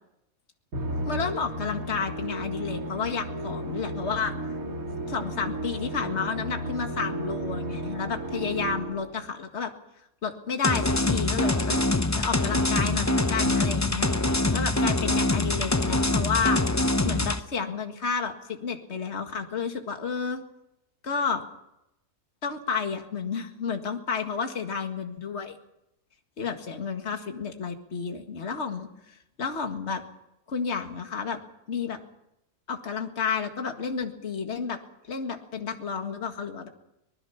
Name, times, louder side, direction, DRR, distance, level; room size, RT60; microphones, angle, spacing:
Musical instrument, 0.7-9.2, right 1 dB, 65° right, 2.6 m, -34 dB
voice 1, 1.0-4.3 4.9-9.7 10.2-11.8 12.2-16.6 17.0-18.3 18.6-20.4 21.0-21.4 22.4-25.6 26.4-30.0 30.5-31.4 31.7-32.0 32.7-34.8 35.1-36.7, left 5 dB, 45° left, 5 dB, 2.1 m, -31 dB
sound 1, 10.6-17.4, left 2 dB, 20° left, 0.5 m, -24 dB
25.0 x 20.0 x 5.8 m, 0.84 s
omnidirectional pair, 1.6 m